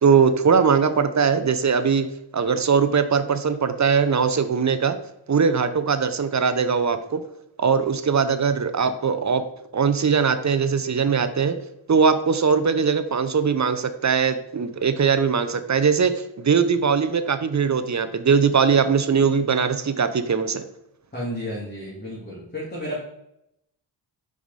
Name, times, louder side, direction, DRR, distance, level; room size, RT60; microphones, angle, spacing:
voice 1, 0.0-2.1 2.3-5.0 5.3-7.2 7.6-9.4 9.7-11.6 11.9-20.6, right 6 dB, 35° right, 11 dB, 0.6 m, -20 dB
voice 2, 21.1-23.0, equal, 20° left, -6 dB, 2.2 m, -32 dB
4.9 x 4.8 x 4.0 m, 0.82 s
cardioid pair, 45°, 50 cm